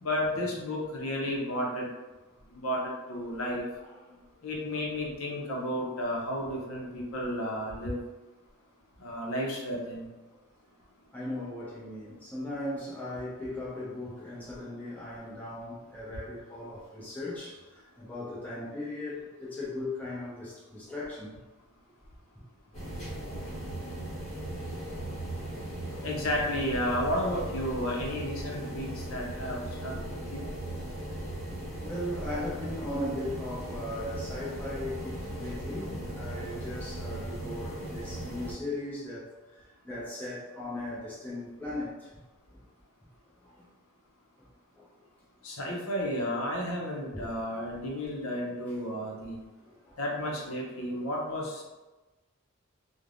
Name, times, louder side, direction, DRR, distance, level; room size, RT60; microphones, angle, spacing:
voice 1, 0.0-1.9 2.5-3.6 4.4-8.0 9.0-10.1 26.0-30.5 45.4-49.4 50.0-51.7, equal, 70° left, -2 dB, 0.6 m, -32 dB
voice 2, 3.8-4.2 11.1-21.3 23.3-23.7 24.9-25.0 25.9-26.1 31.8-39.3 39.8-42.2 42.5-42.6 43.4-43.6 44.7-44.9 47.1-47.3 49.6-50.0, left 1 dB, 5° left, -8 dB, 0.6 m, -38 dB
sound 1, 22.7-38.5, right 1 dB, 30° left, 1.3 m, -38 dB
3.2 x 2.1 x 2.5 m, 1.1 s
head